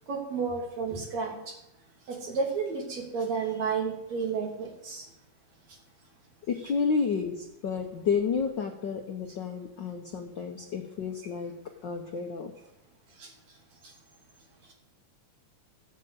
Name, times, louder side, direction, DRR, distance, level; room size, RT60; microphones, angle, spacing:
voice 1, 0.1-1.6 2.1-5.1 13.2-13.3 13.8-13.9, right 5 dB, 60° right, 1 dB, 3.9 m, -32 dB
voice 2, 6.5-11.5 11.8-12.5, left 5 dB, 65° left, 4 dB, 1.1 m, -30 dB
14.5 x 8.3 x 7.9 m, 0.88 s
omnidirectional pair, 3.5 m